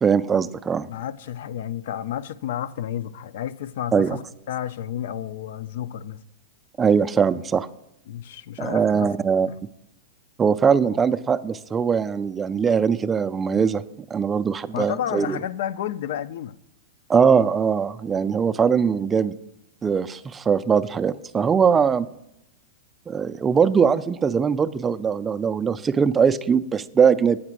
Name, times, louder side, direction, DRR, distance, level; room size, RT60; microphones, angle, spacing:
voice 1, 0.0-0.9 3.9-4.2 6.8-7.7 8.6-9.5 10.4-13.8 14.1-15.4 17.1-19.3 19.8-22.1 23.1-27.4, right 6 dB, 15° right, 0.3 m, -21 dB
voice 2, 0.9-4.2 4.5-6.2 8.1-9.1 9.5-9.6 14.7-16.5, left 10 dB, 65° left, 0.4 m, -31 dB
8.7 x 5.0 x 6.1 m
hypercardioid pair, 140°, 0 cm